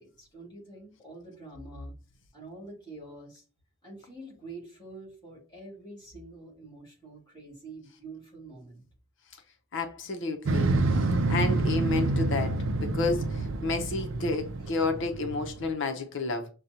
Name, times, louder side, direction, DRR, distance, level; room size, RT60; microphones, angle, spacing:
voice 1, 0.0-1.9 2.3-3.4 3.8-8.8 14.6-14.7, right 2 dB, 25° left, 2.2 m, -46 dB
voice 2, 9.7-16.5, left 3 dB, 65° left, 0.7 m, -31 dB
Motorcycle, 10.5-15.7, right 2 dB, 70° right, 0.5 m, -28 dB
6.3 x 2.3 x 2.8 m
head